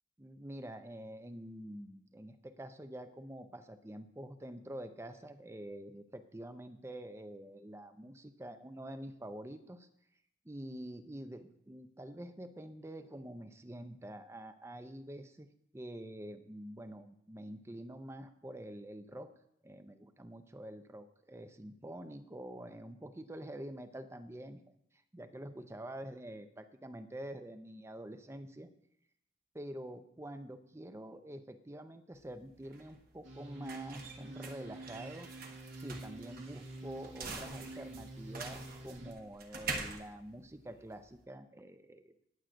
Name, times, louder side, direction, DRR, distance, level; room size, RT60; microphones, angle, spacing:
voice 1, 0.2-9.9 10.4-19.3 19.6-24.8 25.1-28.7 29.5-35.3 35.8-42.1, right 1 dB, 15° right, 9 dB, 0.5 m, -47 dB
sound 1, 32.1-41.2, right 4 dB, 50° right, 1.1 m, -46 dB
sound 2, 33.2-39.1, right 2 dB, 80° right, 2.1 m, -48 dB
18.5 x 7.8 x 2.6 m, 0.75 s
head